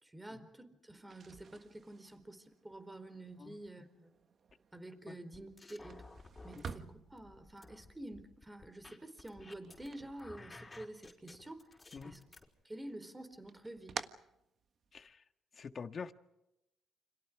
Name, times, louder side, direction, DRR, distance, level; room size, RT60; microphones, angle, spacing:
voice 1, 0.0-4.1 4.7-6.1 6.4-11.7 12.0-12.2 12.6-14.0, right 1 dB, 15° right, 4.2 m, -49 dB
sound 1, 1.0-11.0 11.3-12.1 12.5-15.1, right 6 dB, 50° right, 1.5 m, -51 dB
sound 2, 5.3-6.8 7.2-9.9 10.2-12.4, left 2 dB, 20° left, 5.1 m, -54 dB
voice 2, 15.6-16.1, left 5 dB, 45° left, 1.7 m, -45 dB
30.0 x 27.0 x 4.9 m
cardioid pair, 90°, 0 cm